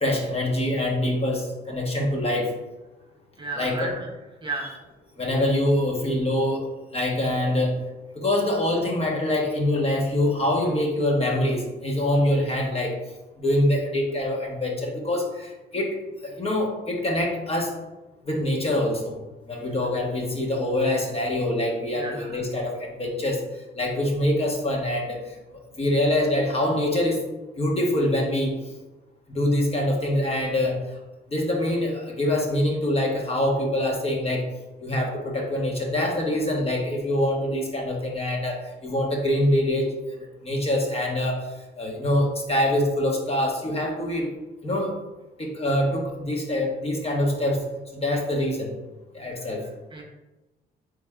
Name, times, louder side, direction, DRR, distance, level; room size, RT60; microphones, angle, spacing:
voice 1, 0.0-2.5 3.5-3.9 5.2-6.7 6.9-7.8 8.1-12.9 13.4-16.0 16.2-17.7 18.2-19.1 19.5-23.4 23.7-25.2 25.8-27.2 27.6-28.6 29.3-30.8 31.3-34.4 34.8-40.1 40.4-41.4 41.8-44.3 44.6-44.9 45.4-47.6 47.9-48.7 49.1-49.6, left 1 dB, 30° left, 0 dB, 1.1 m, -24 dB
voice 2, 3.4-4.1 4.4-4.7 22.0-22.4 49.3-49.5 49.9-50.0, right 3 dB, 25° right, -1 dB, 0.8 m, -34 dB
4.0 x 3.5 x 3.5 m, 1.1 s
cardioid pair, 90°, 20 cm